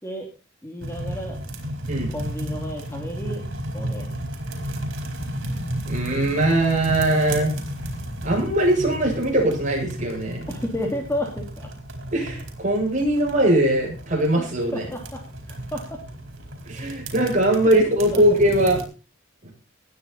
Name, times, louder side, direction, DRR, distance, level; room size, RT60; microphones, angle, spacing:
voice 1, 0.6-1.4 2.1-3.4 3.7-4.2 10.5-11.7 14.7-15.2 15.5-16.0 18.1-18.2, left 1 dB, 15° left, 1 dB, 2.9 m, -31 dB
sound 1, 0.8-18.8, right 1 dB, 80° right, 4.5 m, -33 dB
voice 2, 5.9-7.5 8.2-10.5 12.1-14.8 16.7-18.8, right 1 dB, 40° right, -2 dB, 7.9 m, -21 dB
19.5 x 10.0 x 4.3 m, 0.34 s
head